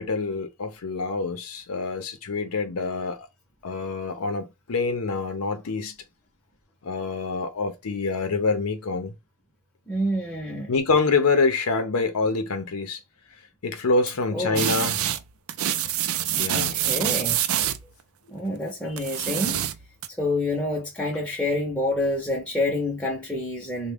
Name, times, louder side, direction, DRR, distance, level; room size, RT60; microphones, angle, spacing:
voice 1, 0.0-3.2 3.6-6.0 6.8-9.1 10.7-13.0 13.6-15.0 16.4-16.8, left 4 dB, 85° left, 0.6 m, -26 dB
voice 2, 9.9-10.7 14.3-14.7 16.5-17.4 18.3-19.6 20.2-23.9, left 1 dB, 5° left, 0.6 m, -27 dB
sound 1, 14.6-15.2 15.5-17.8 19.0-20.1, right 11 dB, 75° right, 0.4 m, -26 dB
3.5 x 2.2 x 3.4 m
head